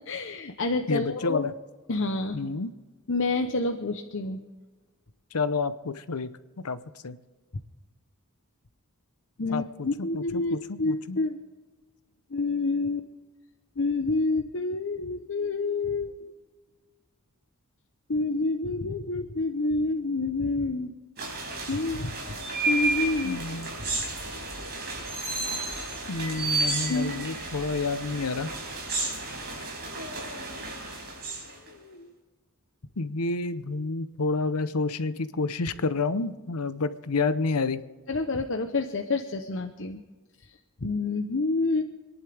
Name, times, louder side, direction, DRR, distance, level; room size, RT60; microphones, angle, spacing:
voice 1, 0.0-1.5 1.9-2.4 3.1-4.4 9.4-11.4 12.3-13.1 13.8-16.2 18.1-20.9 21.7-22.4 22.7-23.6 26.9-27.2 31.7-32.1 38.1-40.0 40.4-41.8, left 3 dB, 55° left, 6 dB, 0.9 m, -28 dB
voice 2, 0.9-1.5 2.3-2.7 5.3-6.3 6.6-6.8 7.0-7.2 9.5-9.9 10.1-11.2 23.2-23.7 26.1-28.5 33.0-37.8, left 3 dB, 90° left, 13 dB, 0.8 m, -29 dB
sound 1, 21.2-31.7, right 2 dB, 50° right, 4.7 m, -32 dB
27.0 x 11.0 x 3.5 m, 1.3 s
head